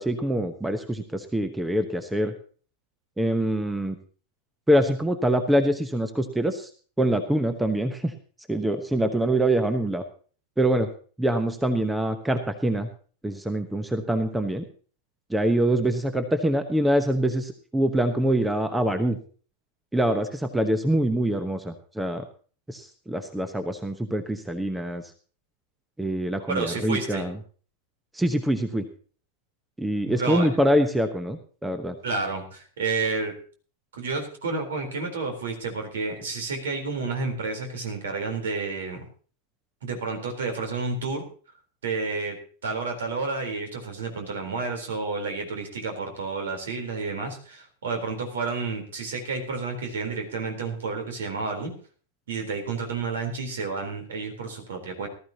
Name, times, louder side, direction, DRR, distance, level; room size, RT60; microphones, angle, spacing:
voice 1, 0.0-2.3 3.2-4.0 4.7-6.7 7.0-8.1 8.5-10.0 10.6-10.9 11.2-12.9 13.2-14.6 15.3-19.2 19.9-22.2 22.7-25.0 26.0-27.4 28.1-28.8 29.8-31.9, right 1 dB, 5° right, 9 dB, 1.1 m, -24 dB
voice 2, 26.5-27.3 30.1-30.5 32.0-33.3 33.9-39.1 39.8-41.2 41.8-42.4 42.6-51.7 52.3-55.1, right 4 dB, 60° right, 5 dB, 3.9 m, -30 dB
18.5 x 13.5 x 2.9 m, 0.41 s
figure-of-eight pair, 90°, 0 cm